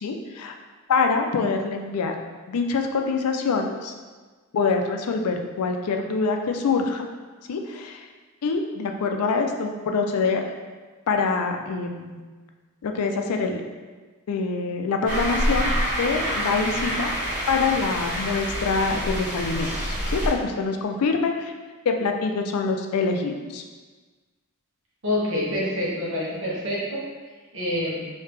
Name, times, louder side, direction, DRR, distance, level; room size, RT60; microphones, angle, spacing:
voice 1, 0.0-0.5 0.9-2.2 2.5-3.9 4.5-7.1 7.5-8.1 8.4-10.5 11.1-12.2 12.8-13.6 14.3-17.1 17.5-21.5 21.9-23.6, left 4 dB, 90° left, 4 dB, 0.4 m, -25 dB
sound 1, 15.1-20.3, equal, 40° right, 0.9 m, -27 dB
voice 2, 25.0-27.0 27.5-28.0, left 1 dB, 60° right, -6 dB, 1.1 m, -26 dB
3.3 x 2.8 x 3.2 m, 1.4 s
head